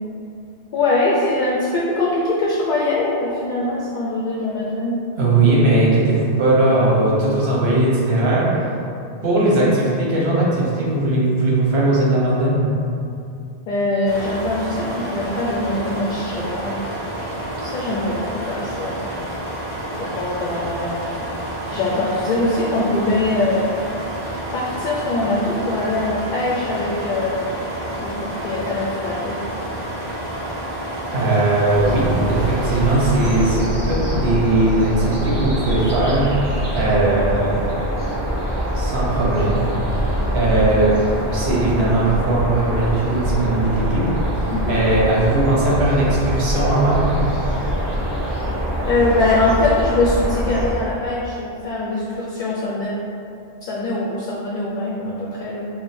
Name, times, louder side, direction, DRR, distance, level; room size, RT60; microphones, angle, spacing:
voice 1, 0.7-5.0 13.7-16.8 17.6-19.0 20.0-21.1 21.7-23.7 24.5-27.4 28.0-29.4 44.5-44.7 48.8-52.9 53.6-55.7, left 2 dB, 60° left, -5 dB, 0.6 m, -22 dB
voice 2, 5.2-8.7 9.2-12.7 17.6-17.7 31.1-36.4 36.7-37.6 38.7-39.7 40.3-40.9 41.3-44.1 44.3-47.2, right 2 dB, 75° right, -6 dB, 1.1 m, -18 dB
sound 1, 14.0-33.5, right 1 dB, 60° right, 1.4 m, -29 dB
sound 2, 31.7-50.7, equal, 30° right, 0.7 m, -24 dB
3.5 x 2.1 x 4.1 m, 2.5 s
omnidirectional pair, 1.1 m